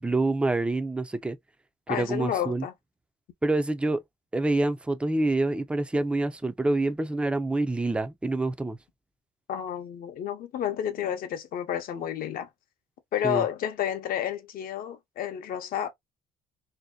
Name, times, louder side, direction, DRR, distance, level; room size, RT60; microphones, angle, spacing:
voice 1, 0.0-1.4 1.9-2.7 3.4-4.0 4.3-8.8 13.2-13.4, right 2 dB, 5° right, 0.3 m, -26 dB
voice 2, 1.9-2.7 9.5-12.5 13.1-15.9, left 10 dB, 60° left, 0.6 m, -30 dB
2.7 x 2.1 x 2.2 m
cardioid pair, 110°, 17 cm